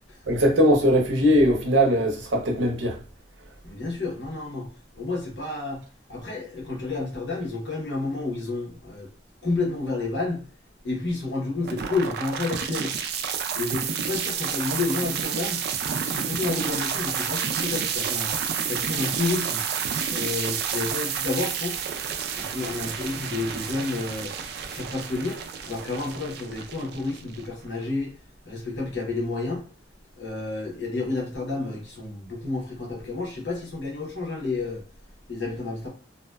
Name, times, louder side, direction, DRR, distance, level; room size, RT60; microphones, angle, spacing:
voice 1, 0.3-3.0, equal, 80° right, 0.7 m, -20 dB
voice 2, 3.6-4.7 4.9-5.8 6.1-9.1 9.4-10.5 10.8-12.9 13.5-19.6 20.1-21.8 22.3-24.3 24.7-28.1 28.4-29.6 30.2-34.8 35.3-35.9, left 3 dB, 65° left, 0.9 m, -30 dB
sound 1, 11.6-27.7, right 7 dB, 55° right, 0.3 m, -30 dB
2.5 x 2.1 x 2.2 m
head